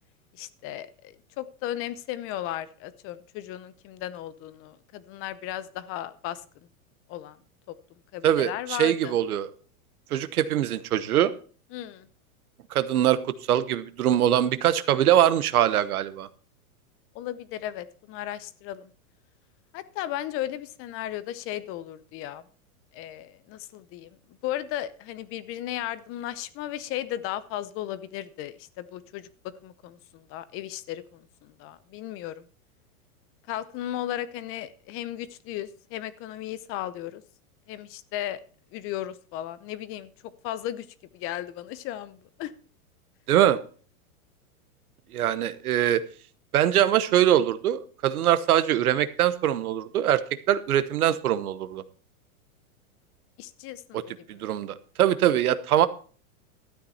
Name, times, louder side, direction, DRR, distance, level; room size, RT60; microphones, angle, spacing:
voice 1, 0.3-6.4 7.1-7.4 7.7-7.8 8.1-9.1 11.7-12.1 17.1-18.9 19.7-22.4 22.9-24.1 24.4-29.3 29.6-32.4 33.5-37.2 37.7-38.4 38.7-40.1 40.4-40.9 41.1-42.5 53.4-54.0, left 13 dB, 30° left, 15 dB, 0.7 m, -35 dB
voice 2, 8.2-9.5 10.1-11.3 12.7-16.3 43.3-43.6 45.1-46.0 46.5-51.8 53.9-54.0 54.3-55.9, right 11 dB, 85° right, 14 dB, 1.1 m, -23 dB
12.5 x 8.7 x 4.3 m, 0.41 s
supercardioid pair, 140°, 43 cm